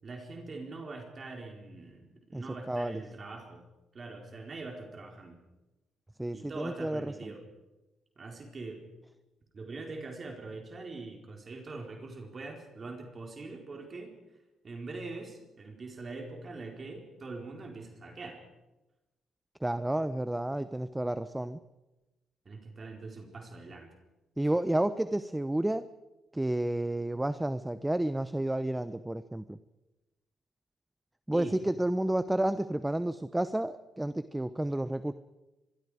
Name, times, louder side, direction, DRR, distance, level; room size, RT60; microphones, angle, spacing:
voice 1, 0.0-3.6 3.9-5.4 6.3-7.4 8.2-8.8 9.5-14.2 14.6-18.4 22.4-23.9 31.3-31.6, right 3 dB, 40° right, 2 dB, 4.3 m, -43 dB
voice 2, 2.3-3.0 6.2-7.3 19.6-21.6 24.4-25.9 26.3-29.6 31.3-35.1, right 1 dB, 10° right, 13 dB, 0.8 m, -31 dB
24.5 x 22.0 x 5.0 m, 1.0 s
cardioid pair, 90°, 0 cm